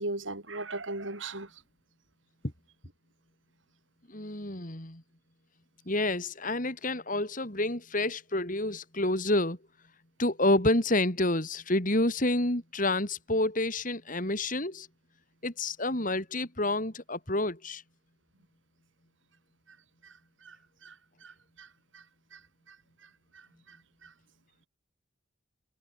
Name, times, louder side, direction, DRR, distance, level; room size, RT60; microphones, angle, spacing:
voice 1, 0.0-1.5 20.0-20.1 20.4-20.6 20.8-20.9 21.2-21.7 21.9-22.0 22.3-22.4 22.7-22.8 23.0-23.8 24.0-24.1, right 2 dB, 75° right, 6.3 m, -39 dB
voice 2, 4.1-5.0 5.9-9.6 10.2-14.9 15.4-17.8, left 2 dB, 40° left, 4.0 m, -29 dB
head